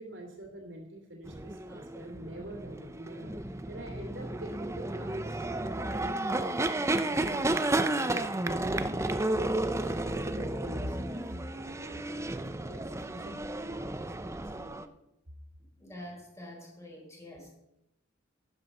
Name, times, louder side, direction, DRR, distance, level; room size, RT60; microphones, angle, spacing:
voice 1, 0.0-3.3 3.7-5.3 5.9-6.7 7.0-9.1 9.6-11.3 11.5-13.4 13.7-13.8 14.6-14.9, equal, 65° right, 1 dB, 2.7 m, -45 dB
sound 1, 1.2-14.9, right 2 dB, 15° right, 0.6 m, -32 dB
voice 2, 15.8-17.5, left 1 dB, 15° left, -2 dB, 4.8 m, -46 dB
12.0 x 11.0 x 5.5 m, 0.87 s
head